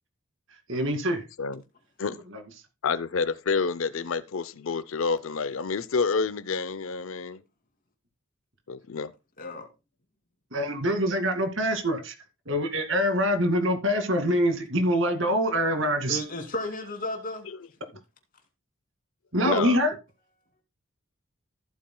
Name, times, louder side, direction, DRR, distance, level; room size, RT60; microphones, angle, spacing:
voice 1, 0.7-1.2 2.3-2.4 10.5-12.1 12.5-16.2 19.3-19.9, equal, 60° right, 2.2 m, -25 dB
voice 2, 2.8-7.4 8.7-9.1 19.4-19.8, left 4 dB, 70° left, 0.6 m, -28 dB
voice 3, 16.1-17.5, left 1 dB, 40° left, 2.5 m, -33 dB
14.5 x 8.5 x 2.2 m
head